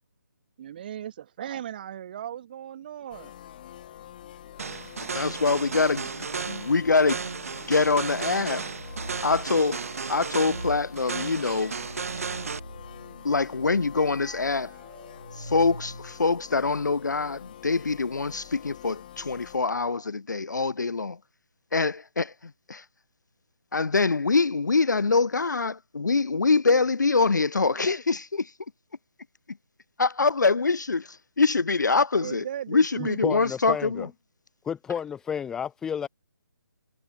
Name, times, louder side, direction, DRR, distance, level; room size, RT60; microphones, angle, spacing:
voice 1, 0.6-3.3 32.2-33.2, right 10 dB, 30° right, 1.5 m, -37 dB
sound 1, 3.1-19.6, left 11 dB, 30° left, 3.1 m, -46 dB
sound 2, 4.6-12.6, right 5 dB, 45° right, 1.3 m, -34 dB
voice 2, 5.1-6.1 6.5-7.2 7.7-8.6 9.2-9.8 10.1-11.8 13.2-14.7 15.4-21.2 21.7-22.3 22.7-22.8 23.7-28.5 30.0-34.1, left 4 dB, 65° left, 0.5 m, -24 dB
sound 3, 8.6-9.5 10.4-16.4, equal, 90° right, 6.3 m, -43 dB
voice 3, 33.0-34.1 34.6-36.1, left 7 dB, 5° left, 0.7 m, -31 dB
figure-of-eight pair, 145°, 11 cm